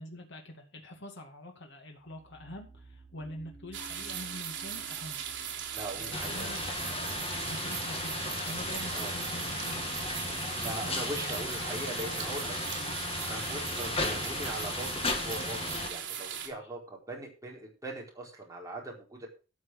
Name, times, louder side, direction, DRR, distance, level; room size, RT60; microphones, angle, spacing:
voice 1, 0.0-5.2 6.0-6.6 7.4-10.0 10.7-11.3 16.5-16.7, left 1 dB, 65° left, 3 dB, 2.3 m, -45 dB
sound 1, 2.0-8.6, right 2 dB, ahead, 3.4 m, -55 dB
sound 2, 3.7-16.5, right 8 dB, 65° right, 3.4 m, -38 dB
voice 2, 5.7-6.5 8.9-9.1 10.6-13.0 13.2-16.8 17.1-19.3, right 1 dB, 15° right, -2 dB, 4.2 m, -41 dB
sound 3, 6.1-15.9, left 3 dB, 30° left, 2.0 m, -35 dB
12.5 x 6.4 x 6.2 m, 0.33 s
head